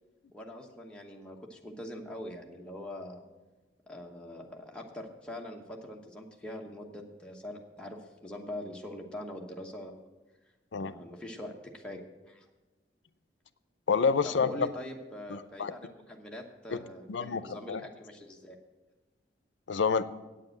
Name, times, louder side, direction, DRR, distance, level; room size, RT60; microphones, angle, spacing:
voice 1, 0.3-3.3 3.9-10.1 10.8-12.5 14.2-18.6, left 1 dB, 5° left, -1 dB, 1.1 m, -43 dB
voice 2, 13.9-14.7 15.3-15.7 16.7-16.8 17.1-17.4 17.7-17.8 19.7-20.0, left 5 dB, 80° left, 14 dB, 0.5 m, -28 dB
8.7 x 7.7 x 7.7 m, 1.2 s
head